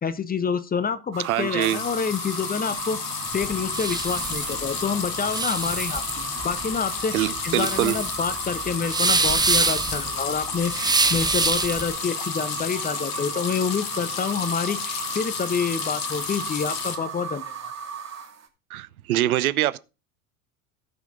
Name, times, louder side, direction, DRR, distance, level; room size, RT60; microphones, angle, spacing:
voice 1, 0.0-3.0 3.3-17.7, left 6 dB, 20° left, 1.0 m, -28 dB
sound 1, 1.1-18.5, right 6 dB, 35° right, 2.6 m, -36 dB
voice 2, 1.2-1.8 7.1-8.0 18.7-19.8, right 14 dB, 70° right, 0.7 m, -24 dB
sound 2, 1.6-17.0, left 9 dB, 45° left, 1.7 m, -33 dB
sound 3, 3.3-11.9, right 3 dB, 10° right, 0.9 m, -26 dB
17.5 x 5.9 x 3.8 m
figure-of-eight pair, 75°, 45 cm